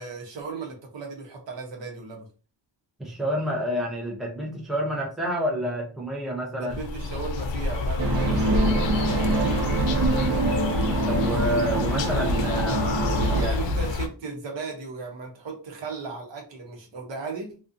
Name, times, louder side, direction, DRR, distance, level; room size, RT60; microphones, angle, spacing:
voice 1, 0.0-2.3 6.6-9.8 13.3-17.6, right 4 dB, 75° right, 1 dB, 0.9 m, -36 dB
voice 2, 3.0-6.8 10.0-10.4 11.1-12.9 13.3-13.5, equal, ahead, -2 dB, 0.6 m, -29 dB
sound 1, 6.7-14.1, left 3 dB, 80° left, 0.5 m, -27 dB
sound 2, 8.0-13.4, right 3 dB, 60° right, 0.5 m, -26 dB
sound 3, 8.5-11.2, equal, 20° right, 1.2 m, -41 dB
2.5 x 2.3 x 2.5 m, 0.36 s
wide cardioid pair, 130°, 44 cm